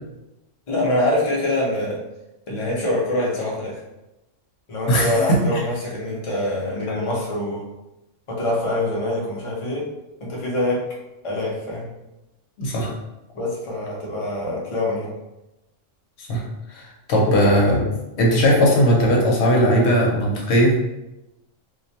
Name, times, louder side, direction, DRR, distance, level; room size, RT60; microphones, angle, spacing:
voice 1, 0.7-2.0 2.5-3.8 4.7-7.6 8.3-9.9 10.2-10.9 11.2-11.9 13.3-15.1, left 1 dB, 45° left, -4 dB, 0.4 m, -24 dB
voice 2, 4.9-5.4 6.9-7.0 12.6-12.9 16.2-16.4 16.7-16.8 17.1-17.9 18.2-20.7, equal, 65° left, -2 dB, 0.9 m, -18 dB
2.4 x 2.1 x 2.7 m, 0.96 s
omnidirectional pair, 1.3 m